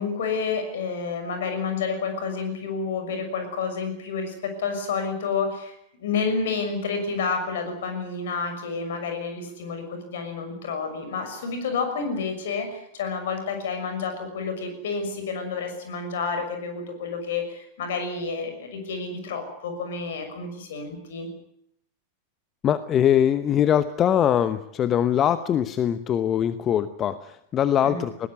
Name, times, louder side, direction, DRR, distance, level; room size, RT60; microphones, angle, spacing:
voice 1, 0.0-21.3 27.8-28.1, left 5 dB, 60° left, 7 dB, 6.2 m, -29 dB
voice 2, 22.6-28.3, left 10 dB, 30° left, 13 dB, 1.0 m, -22 dB
21.0 x 18.0 x 9.6 m, 0.74 s
figure-of-eight pair, 90°, 0 cm